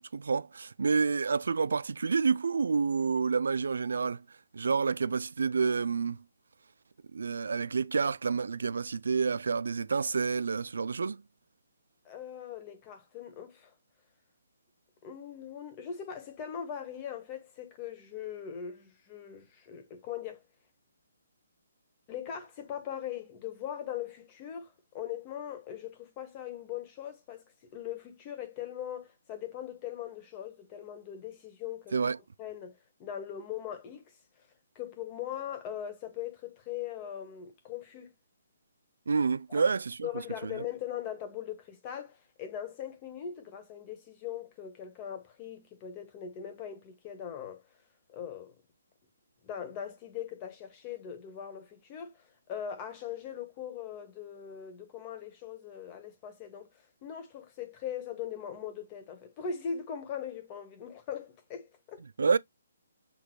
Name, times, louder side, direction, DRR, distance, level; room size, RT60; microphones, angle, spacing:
voice 1, 0.1-4.2 4.5-6.2 7.1-11.2 31.9-32.2 39.1-40.1 40.4-40.5 62.2-62.4, right 5 dB, 80° right, 0.3 m, -28 dB
voice 2, 12.0-13.7 15.0-20.4 22.1-27.4 27.7-32.1 32.4-34.0 34.7-38.1 39.5-39.6 40.0-47.6 48.1-48.6 49.4-56.7 57.0-62.0, left 9 dB, 25° left, 1.1 m, -40 dB
6.1 x 2.9 x 2.2 m
hypercardioid pair, 160°, 0 cm